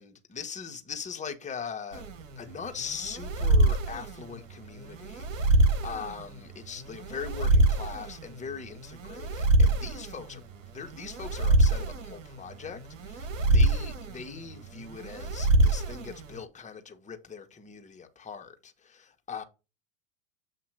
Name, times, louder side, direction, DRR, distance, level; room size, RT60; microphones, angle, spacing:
voice 1, 0.0-2.1 2.4-10.4 10.7-19.4, left 6 dB, 20° left, 1.2 m, -41 dB
sound 1, 1.9-16.4, right 2 dB, 85° right, 1.3 m, -26 dB
7.5 x 2.9 x 6.0 m
hypercardioid pair, 100°, 38 cm